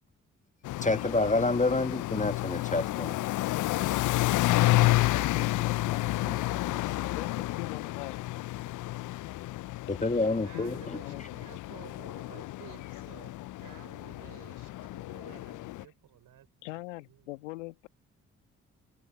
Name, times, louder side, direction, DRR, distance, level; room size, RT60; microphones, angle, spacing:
sound 1, 0.6-15.8, left 17 dB, 55° left, 0.5 m, -30 dB
voice 1, 0.8-3.2 9.9-11.0, left 2 dB, 20° left, 1.5 m, -28 dB
voice 2, 4.7-5.4 9.9-10.1 10.4-17.4, right 12 dB, 70° right, 5.7 m, -54 dB
voice 3, 5.3-8.2 9.9-10.3 10.5-11.9 16.6-17.9, left 19 dB, 90° left, 1.7 m, -43 dB
hypercardioid pair, 40°, 36 cm